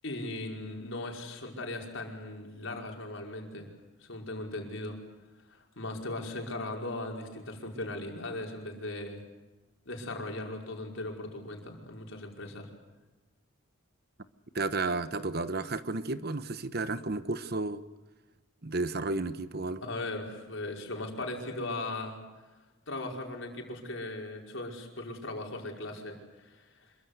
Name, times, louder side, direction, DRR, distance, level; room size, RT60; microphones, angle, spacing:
voice 1, 0.0-3.7 4.0-5.0 5.5-9.2 9.9-12.7 19.8-22.2 22.9-26.9, left 2 dB, 65° left, 1 dB, 5.3 m, -38 dB
voice 2, 14.5-17.8 18.6-19.8, right 3 dB, 50° right, 12 dB, 1.1 m, -32 dB
27.0 x 23.5 x 8.1 m, 1.2 s
head